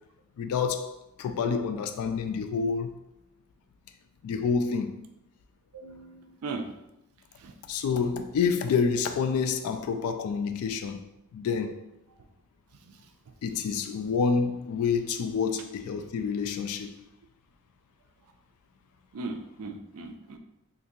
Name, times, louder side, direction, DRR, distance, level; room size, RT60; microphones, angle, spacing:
voice 1, 0.4-2.9 4.2-4.9 7.7-11.0 11.3-11.8 13.4-17.0, left 5 dB, 85° left, 0.3 m, -28 dB
voice 2, 5.7-6.7 7.4-7.5 12.9-13.0 19.1-20.4, right 3 dB, 90° right, 0.4 m, -38 dB
3.8 x 2.5 x 2.7 m
head